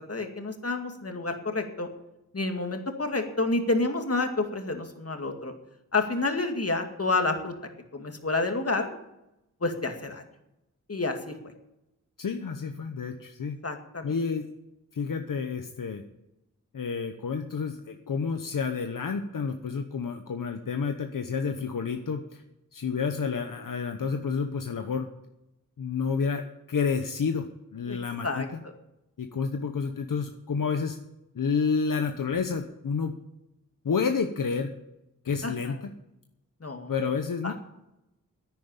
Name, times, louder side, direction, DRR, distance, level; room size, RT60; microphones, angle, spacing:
voice 1, 0.1-1.9 2.3-5.5 5.9-7.6 7.9-9.0 9.6-10.2 10.9-11.5 13.6-14.1 27.9-28.0 28.2-28.7 35.4-35.8 36.6-36.9 37.4-37.5, left 3 dB, 45° left, 5 dB, 2.2 m, -29 dB
voice 2, 12.2-13.6 14.0-14.5 14.9-16.0 16.7-22.4 22.7-25.1 25.8-28.4 29.2-31.0 31.3-33.1 33.8-34.7 35.2-35.9 36.9-37.5, left 5 dB, 80° left, 6 dB, 1.0 m, -30 dB
10.5 x 9.5 x 8.9 m, 0.88 s
wide cardioid pair, 55°, 33 cm